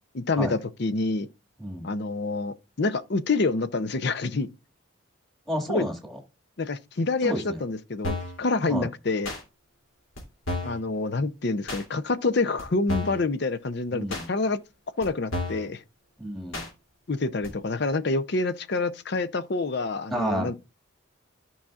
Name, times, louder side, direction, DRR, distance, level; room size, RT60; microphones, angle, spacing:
voice 1, 0.1-1.3 1.8-4.5 5.7-5.9 6.6-9.3 10.6-14.6 15.0-15.8 17.1-20.5, left 3 dB, 50° left, 0.6 m, -27 dB
voice 2, 5.5-6.2 7.2-7.6 8.7-8.9 13.9-14.3 16.2-16.6 20.1-20.5, right 1 dB, ahead, 1.8 m, -30 dB
sound 1, 8.0-8.4 9.2-9.4 10.2-10.3 10.5-10.8 11.7-11.8 12.6-12.7 12.9-13.2 14.1-14.3 15.0-15.1 15.3-15.7 16.5-16.7 17.4-17.5, left 2 dB, 75° left, 2.8 m, -31 dB
13.0 x 5.5 x 2.4 m
head